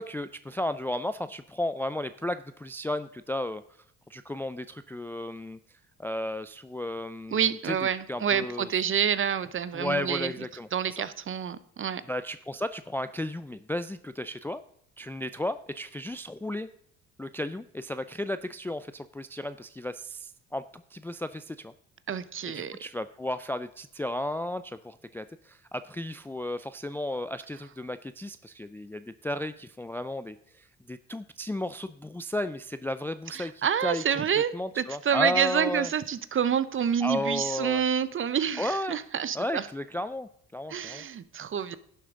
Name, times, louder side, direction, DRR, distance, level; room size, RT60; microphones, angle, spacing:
voice 1, 0.0-3.6 4.1-5.6 6.0-7.8 8.1-8.7 9.7-11.0 12.1-14.6 15.0-16.7 17.2-21.7 22.5-34.0 34.5-35.9 37.0-37.8 38.6-39.0 39.3-41.0, left 1 dB, 5° left, 12 dB, 0.4 m, -34 dB
voice 2, 7.3-10.3 10.7-12.0 22.1-22.8 33.3-39.7 40.7-41.8, right 8 dB, 35° right, 15 dB, 0.8 m, -28 dB
11.0 x 7.7 x 3.7 m, 0.69 s
hypercardioid pair, 65°, 35 cm